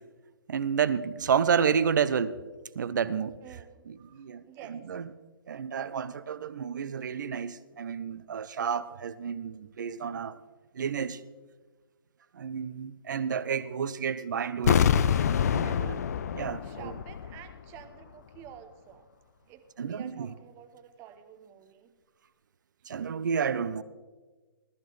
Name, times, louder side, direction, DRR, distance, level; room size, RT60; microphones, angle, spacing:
voice 1, 0.5-2.4 2.8-3.3 3.9-4.4 4.7-5.1 5.5-10.4 10.8-11.2 12.4-14.9 15.5-16.0 16.3-16.9 19.8-20.3 22.9-23.8, right 7 dB, 50° right, 15 dB, 0.6 m, -30 dB
voice 2, 3.4-4.8 16.6-19.1 19.5-21.9, right 10 dB, 20° right, 8 dB, 0.8 m, -50 dB
sound 1, 14.6-17.5 17.8-17.9, left 8 dB, 40° left, 0.4 m, -26 dB
16.0 x 13.5 x 3.1 m, 1.3 s
figure-of-eight pair, 135°, 12 cm